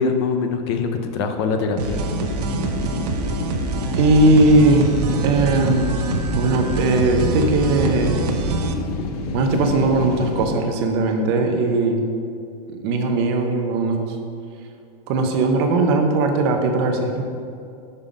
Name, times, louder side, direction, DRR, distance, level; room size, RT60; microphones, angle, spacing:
voice 1, 0.0-2.0, left 4 dB, 45° left, 6 dB, 0.4 m, -23 dB
sound 1, 1.8-8.7, right 3 dB, 85° right, 0.7 m, -25 dB
sound 2, 1.9-10.5, left 3 dB, 75° left, 0.7 m, -29 dB
voice 2, 4.0-4.9 5.2-5.9 6.3-8.1 9.3-12.0 12.8-14.1 15.1-17.2, right 2 dB, 40° right, 4 dB, 0.7 m, -18 dB
5.5 x 5.4 x 4.9 m, 2.5 s
supercardioid pair, 175°, 20 cm